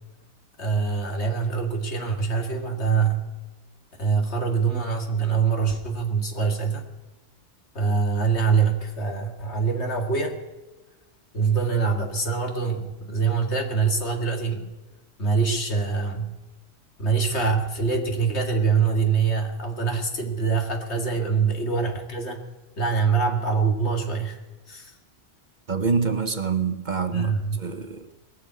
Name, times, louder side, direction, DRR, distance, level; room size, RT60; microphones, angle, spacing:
voice 1, 0.6-3.2 4.0-6.8 7.7-10.4 11.3-14.7 15.2-16.3 17.0-22.4 22.8-24.4 24.7-24.9 27.1-27.6, right 5 dB, 75° left, 3 dB, 2.4 m, -24 dB
voice 2, 25.7-28.1, right 5 dB, 45° right, 9 dB, 1.1 m, -26 dB
20.5 x 7.2 x 9.5 m, 1.2 s
omnidirectional pair, 1.2 m